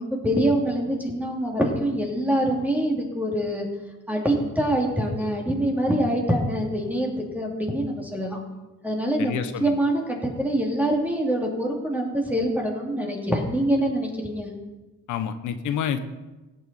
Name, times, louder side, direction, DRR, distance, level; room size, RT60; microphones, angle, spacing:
voice 1, 0.0-3.7 4.1-7.1 7.3-8.4 8.8-14.5, right 1 dB, 5° right, -1 dB, 2.3 m, -25 dB
voice 2, 9.2-9.8 15.1-16.0, left 8 dB, 80° left, 10 dB, 0.8 m, -28 dB
17.0 x 6.5 x 4.2 m, 1.1 s
cardioid pair, 90°, 30 cm